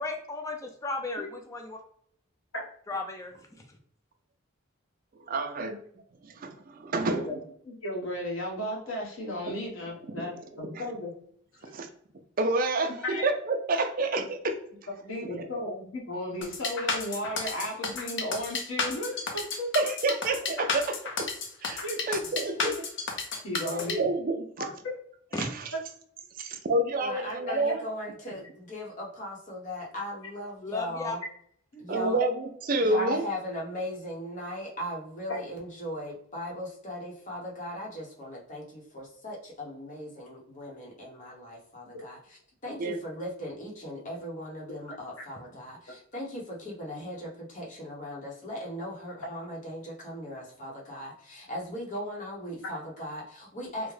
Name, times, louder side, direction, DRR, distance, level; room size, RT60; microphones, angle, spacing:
voice 1, 0.0-1.8 2.9-3.3 25.3-25.5 30.6-31.2, left 3 dB, 15° left, 2 dB, 0.5 m, -34 dB
voice 2, 5.3-5.7 6.4-7.2 9.5-9.6 10.7-10.8 11.7-11.9 12.4-13.0 13.2-14.6 15.2-15.5 19.7-21.3 21.6-22.8 23.7-24.6 25.4-25.5 26.4-27.8 31.9-33.2 42.8-43.0, right 2 dB, 45° right, 6 dB, 0.4 m, -28 dB
voice 3, 7.1-7.4 7.6-11.1 11.5-11.7 13.0-13.3 15.0-19.7 21.8-22.1 22.3-22.4 23.4-24.1 24.6-24.7 27.5-27.6 31.7-31.9 32.9-33.1 45.2-45.3 52.6-52.7, left 1 dB, 75° left, -2 dB, 1.1 m, -35 dB
sound 1, 16.4-23.9, left 4 dB, 60° left, 0.6 m, -32 dB
voice 4, 22.3-22.6 27.0-31.2 31.8-32.2 32.8-42.2 42.6-53.9, left 1 dB, 40° left, -3 dB, 0.9 m, -38 dB
3.5 x 2.1 x 3.2 m, 0.63 s
head